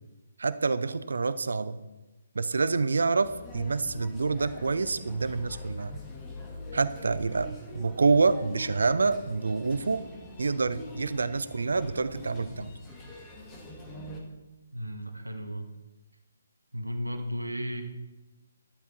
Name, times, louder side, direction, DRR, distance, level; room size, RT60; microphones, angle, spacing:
voice 1, 0.4-1.8 2.3-6.0 6.7-10.0 10.4-12.8, right 4 dB, 65° right, 14 dB, 0.8 m, -27 dB
sound 1, 3.2-14.2, left 1 dB, 15° left, 2.2 m, -44 dB
voice 2, 14.7-15.7 16.7-17.8, equal, 85° right, 5 dB, 1.7 m, -34 dB
12.0 x 11.5 x 4.5 m, 1.1 s
figure-of-eight pair, 140°, 0 cm